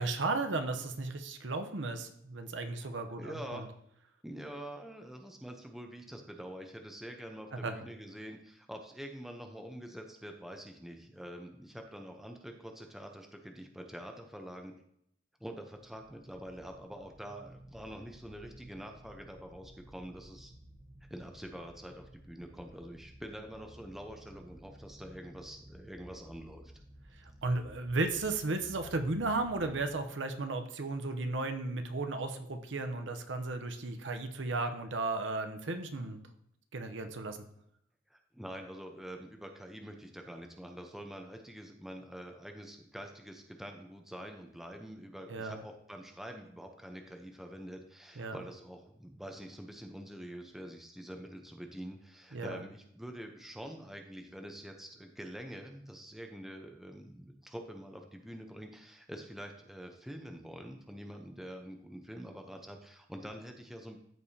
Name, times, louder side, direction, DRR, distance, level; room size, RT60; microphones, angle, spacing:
voice 1, 0.0-3.6 7.5-7.8 27.2-36.2 36.7-37.4 45.3-45.6 48.2-48.4 52.3-52.6, right 3 dB, 75° right, 7 dB, 0.8 m, -35 dB
voice 2, 3.2-3.7 4.2-14.7 15.4-20.5 21.1-26.7 38.1-64.0, equal, ahead, 3 dB, 0.7 m, -46 dB
sound 1, 15.8-29.9, right 1 dB, 35° right, 1.2 m, -55 dB
13.5 x 4.8 x 2.8 m, 0.73 s
head